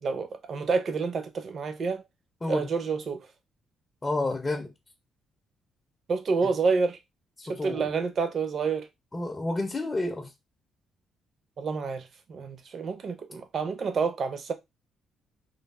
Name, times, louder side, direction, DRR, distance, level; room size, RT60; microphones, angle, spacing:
voice 1, 0.0-2.0 2.5-3.3 6.1-7.0 7.5-8.9 11.6-14.5, right 4 dB, 50° right, 0.5 m, -28 dB
voice 2, 4.0-4.7 7.4-7.9 9.1-10.3, left 2 dB, 20° left, 0.4 m, -30 dB
3.1 x 2.0 x 2.2 m
cardioid pair, 90°, 0 cm